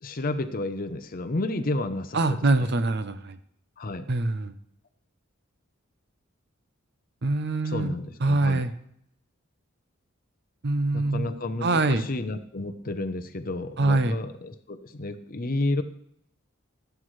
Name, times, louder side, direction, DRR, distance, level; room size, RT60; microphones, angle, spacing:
voice 1, 0.0-2.7 3.8-4.1 7.6-8.6 10.9-15.8, left 2 dB, 40° left, 9 dB, 0.7 m, -31 dB
voice 2, 2.1-3.4 4.1-4.5 7.2-7.9 8.2-8.7 10.6-11.3 11.6-12.1 13.8-14.2, right 2 dB, 55° right, 11 dB, 0.7 m, -24 dB
15.0 x 7.9 x 3.2 m, 0.71 s
head